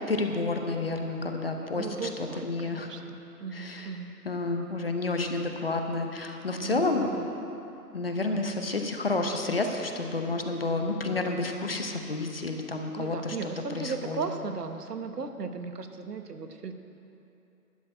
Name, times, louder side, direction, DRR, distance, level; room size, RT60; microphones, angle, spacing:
voice 1, 0.0-2.1 2.4-2.9 3.5-3.9 4.2-7.1 7.9-13.4 13.7-14.2, left 3 dB, 40° left, 4 dB, 0.8 m, -30 dB
voice 2, 1.7-4.1 6.6-7.3 13.0-16.7, right 4 dB, 80° right, 7 dB, 1.1 m, -36 dB
11.5 x 6.6 x 8.7 m, 2.9 s
hypercardioid pair, 170°, 47 cm